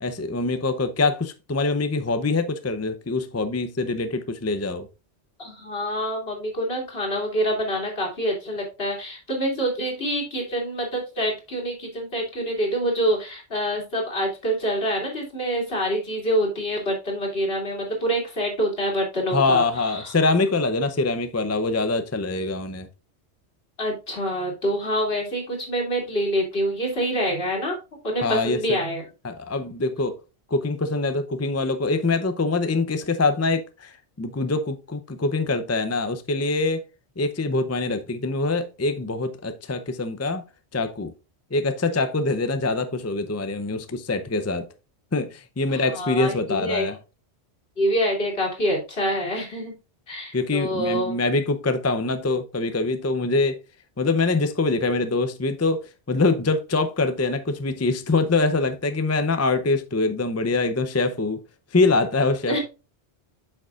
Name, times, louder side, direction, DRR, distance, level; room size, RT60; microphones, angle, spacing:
voice 1, 0.0-4.9 19.3-22.9 28.2-28.6 29.2-30.2 30.5-36.8 37.2-40.4 40.7-41.1 41.5-44.7 45.1-46.9 50.3-53.6 54.0-61.4 61.7-62.6, left 3 dB, 20° left, 0.4 m, -24 dB
voice 2, 5.4-20.1 23.8-27.8 28.0-29.0 45.7-46.9 47.8-49.7 50.1-51.3 62.5-62.6, equal, 60° left, 2.9 m, -26 dB
8.0 x 6.6 x 2.4 m
omnidirectional pair, 1.1 m